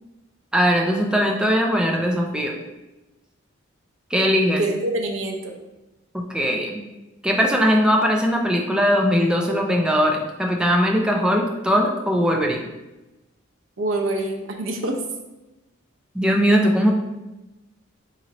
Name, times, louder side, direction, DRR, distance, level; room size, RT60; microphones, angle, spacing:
voice 1, 0.5-2.6 4.1-4.6 6.1-6.8 7.2-12.7 16.1-16.9, equal, 5° right, 1 dB, 0.5 m, -20 dB
voice 2, 4.6-5.5 13.8-15.0, right 2 dB, 75° right, 2 dB, 0.7 m, -25 dB
3.9 x 3.1 x 3.9 m, 1.0 s
head